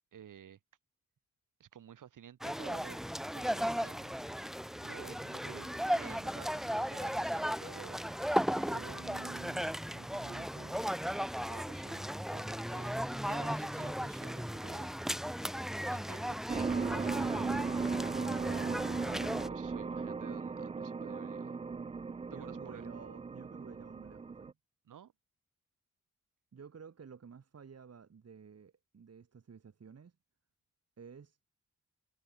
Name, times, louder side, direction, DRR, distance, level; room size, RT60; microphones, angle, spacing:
voice 1, 0.1-0.6 1.6-4.2 4.8-8.2 8.5-9.0 11.5-14.9 15.9-17.4 18.5-18.7 19.5-21.6 22.3-22.9 24.8-25.1, right 9 dB, 90° right, 1.7 m, -52 dB
sound 1, 2.4-19.5, equal, ahead, 0.8 m, -36 dB
voice 2, 8.7-10.9 18.6-18.8 22.3-24.5 26.5-30.2 31.0-31.4, right 6 dB, 55° right, 2.5 m, -52 dB
sound 2, 16.5-24.5, right 4 dB, 20° right, 0.4 m, -37 dB
wide cardioid pair, 100°, 31 cm